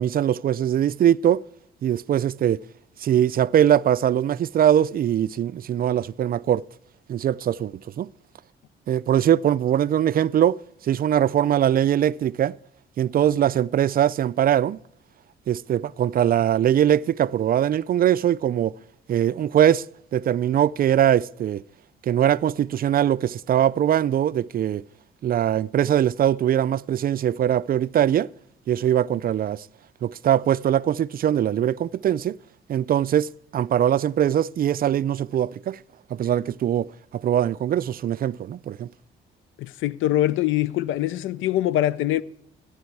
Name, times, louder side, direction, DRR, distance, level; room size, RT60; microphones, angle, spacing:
voice 1, 0.0-1.4 1.8-2.6 3.0-6.7 7.1-8.1 8.9-12.6 13.0-14.8 15.5-18.8 19.1-19.8 20.1-21.6 22.0-24.8 25.2-28.3 28.7-29.7 30.0-32.4 32.7-35.8 36.1-38.9, right 10 dB, 50° right, 0.4 m, -21 dB
voice 2, 39.6-42.2, left 13 dB, 90° left, 0.5 m, -23 dB
14.5 x 10.0 x 4.7 m
cardioid pair, 90°, 20 cm